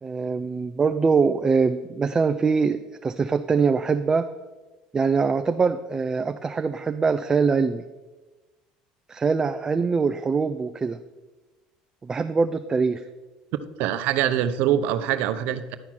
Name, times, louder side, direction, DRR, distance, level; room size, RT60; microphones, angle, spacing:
voice 1, 0.0-4.3 4.9-7.8 9.1-11.0 12.0-13.0, right 5 dB, 25° right, 8 dB, 0.4 m, -23 dB
voice 2, 13.8-15.7, right 10 dB, 70° right, 11 dB, 0.6 m, -24 dB
11.0 x 4.4 x 5.9 m, 1.2 s
supercardioid pair, 95°, 3 cm